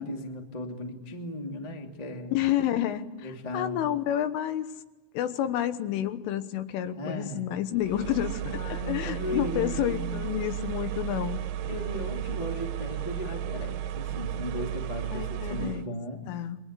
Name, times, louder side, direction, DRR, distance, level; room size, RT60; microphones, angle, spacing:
voice 1, 0.0-2.3 3.2-3.9 6.9-7.4 8.5-10.3 11.7-16.3, left 1 dB, 25° left, 2 dB, 0.7 m, -36 dB
voice 2, 2.3-4.7 5.1-11.4 15.1-15.8 16.3-16.6, left 11 dB, 75° left, 10 dB, 3.5 m, -30 dB
sound 1, 7.8-15.9, right 10 dB, 80° right, 3.6 m, -34 dB
30.0 x 22.5 x 8.2 m, 1.1 s
omnidirectional pair, 6.0 m